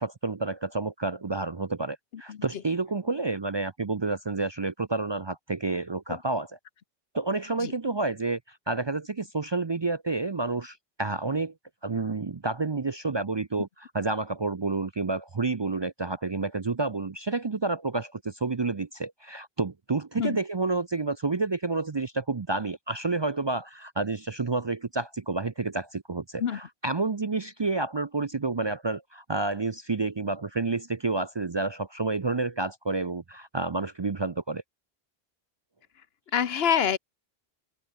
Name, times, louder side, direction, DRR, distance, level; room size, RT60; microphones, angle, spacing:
voice 1, 0.0-6.6 7.1-11.5 11.8-34.6, right 3 dB, 35° right, 0.5 m, -29 dB
voice 2, 36.3-37.0, left 8 dB, 75° left, 1.1 m, -25 dB
omnidirectional pair, 1.0 m